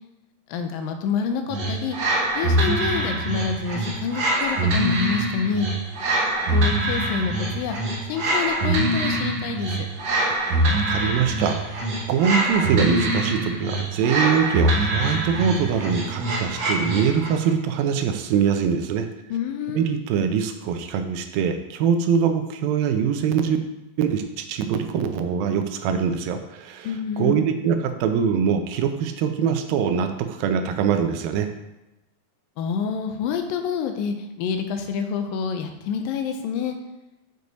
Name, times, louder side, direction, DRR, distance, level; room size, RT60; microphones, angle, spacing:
voice 1, 0.5-2.0 2.4-5.7 6.5-7.8 8.1-9.8 19.3-19.9 26.8-27.5 32.6-36.7, left 6 dB, 80° left, 6 dB, 2.4 m, -27 dB
sound 1, 1.5-17.4, right 1 dB, 60° right, 2.1 m, -24 dB
voice 2, 10.7-19.1 19.7-23.6 24.0-31.5, right 7 dB, 85° right, 7 dB, 2.5 m, -23 dB
6.8 x 6.4 x 4.1 m, 0.98 s
omnidirectional pair, 4.1 m